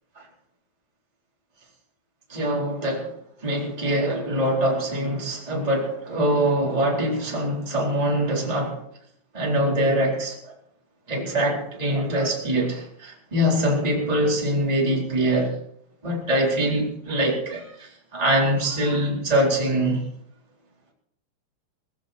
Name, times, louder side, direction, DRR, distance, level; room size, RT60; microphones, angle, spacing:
voice 1, 2.3-3.1 3.4-8.8 9.3-10.4 11.1-15.5 16.0-20.1, right 1 dB, 10° right, -3 dB, 3.6 m, -23 dB
20.0 x 15.5 x 4.4 m, 0.71 s
omnidirectional pair, 5.4 m